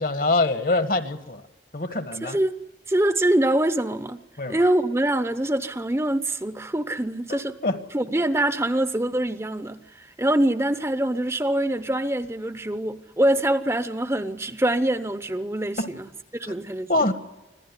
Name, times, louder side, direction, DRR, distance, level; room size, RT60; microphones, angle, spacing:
voice 1, 0.0-1.4 1.7-2.4 4.4-4.6 7.3-7.8 15.8-15.9 16.9-17.1, left 2 dB, 50° left, 10 dB, 1.5 m, -24 dB
voice 2, 2.2-2.6 2.9-4.2 4.5-7.6 7.9-17.1, right 1 dB, 15° right, 11 dB, 0.8 m, -24 dB
25.5 x 15.5 x 9.7 m, 1.1 s
head